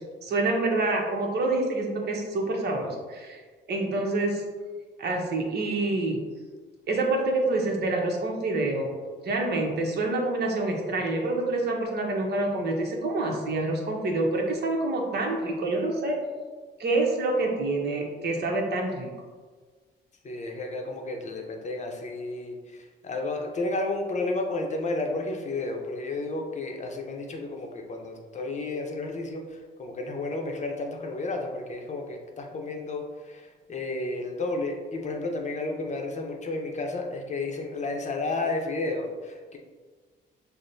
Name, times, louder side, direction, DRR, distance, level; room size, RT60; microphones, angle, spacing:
voice 1, 0.2-3.4 3.7-4.4 5.0-6.2 6.9-8.9 9.2-16.2 16.8-19.1, right 2 dB, 55° right, 0 dB, 0.9 m, -27 dB
voice 2, 20.2-39.6, left 2 dB, 35° left, 2 dB, 0.7 m, -32 dB
6.0 x 2.1 x 2.6 m, 1.4 s
cardioid pair, 90°, 20 cm